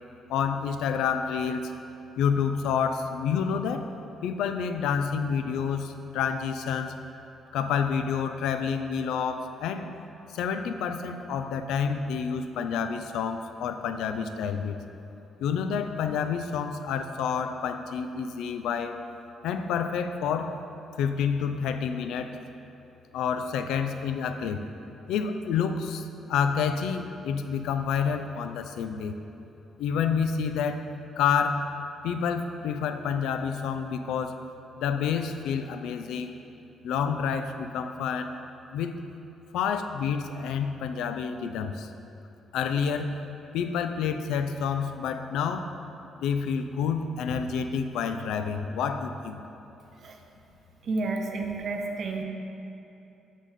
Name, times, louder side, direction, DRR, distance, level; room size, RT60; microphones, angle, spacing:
voice 1, 0.3-1.7 2.2-3.9 4.2-6.9 7.5-9.9 10.3-14.8 15.4-19.0 19.4-20.5 21.0-22.4 23.1-24.6 25.1-29.1 29.8-30.9 31.2-31.7 32.0-34.4 34.8-36.3 36.8-38.4 38.7-39.0 39.5-41.9 42.5-43.1 43.5-45.7 46.2-49.4, left 6 dB, 85° left, 8 dB, 0.4 m, -28 dB
voice 2, 50.8-52.2, right 3 dB, 55° right, 2 dB, 0.8 m, -30 dB
6.6 x 6.2 x 4.1 m, 3.0 s
cardioid pair, 90°, 0 cm